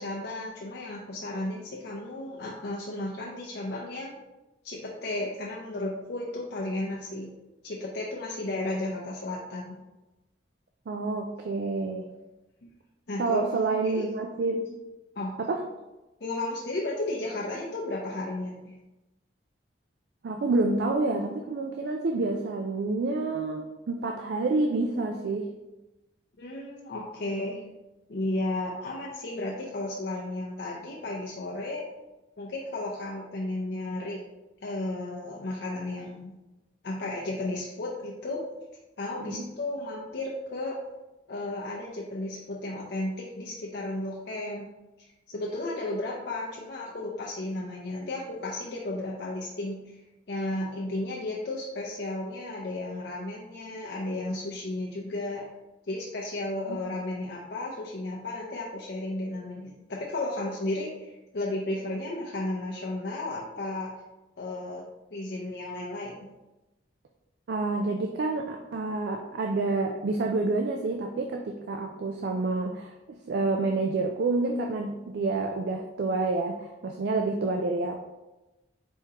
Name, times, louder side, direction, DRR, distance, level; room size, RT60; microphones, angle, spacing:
voice 1, 0.0-4.2 4.6-7.3 7.6-9.8 12.6-12.7 13.1-14.1 15.2-15.3 16.2-18.7 26.4-27.6 28.1-31.9 32.4-34.2 34.6-36.3 36.8-38.5 39.0-40.8 41.3-44.7 45.3-50.0 50.3-55.4 55.9-63.9 64.4-64.8 65.1-66.3, left 2 dB, 60° left, -4 dB, 0.6 m, -34 dB
voice 2, 10.9-12.1 13.2-14.7 15.4-15.6 20.2-25.5 39.2-39.5 56.7-56.8 67.5-72.9 73.3-78.0, right 3 dB, 60° right, 3 dB, 0.3 m, -28 dB
4.3 x 3.6 x 2.9 m, 1.0 s
head